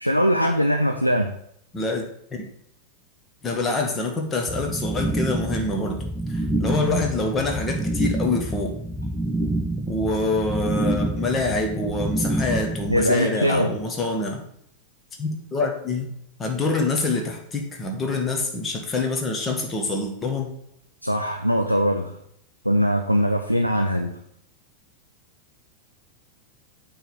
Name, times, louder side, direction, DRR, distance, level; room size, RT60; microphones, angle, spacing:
voice 1, 0.0-1.3 12.9-13.7 21.0-22.2 22.6-24.1, equal, 90° left, 4 dB, 0.6 m, -21 dB
voice 2, 1.7-2.0 2.3-2.4 3.4-6.0 6.3-8.7 9.9-14.4 15.2-16.1 16.4-20.5, left 3 dB, 20° left, 2 dB, 1.6 m, -26 dB
sound 1, 4.5-13.0, right 1 dB, ahead, 0.7 m, -27 dB
8.8 x 3.6 x 6.2 m, 0.70 s
figure-of-eight pair, 90°, 0 cm